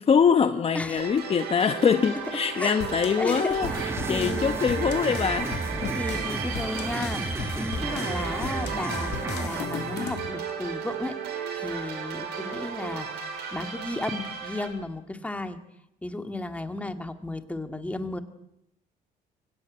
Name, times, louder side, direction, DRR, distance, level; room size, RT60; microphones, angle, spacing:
voice 1, 0.0-5.9, left 6 dB, 35° left, 9 dB, 1.0 m, -24 dB
sound 1, 1.0-14.7, right 6 dB, 80° right, 6.1 m, -34 dB
sound 2, 2.8-10.3, left 10 dB, 85° left, 2.2 m, -38 dB
voice 2, 3.2-4.6 5.9-13.1 13.5-15.6 16.0-18.2, left 2 dB, 10° left, 7 dB, 2.1 m, -34 dB
sound 3, 3.6-9.7, right 3 dB, 15° right, 1.1 m, -33 dB
25.0 x 17.0 x 9.6 m, 0.84 s
cardioid pair, 110°, 17 cm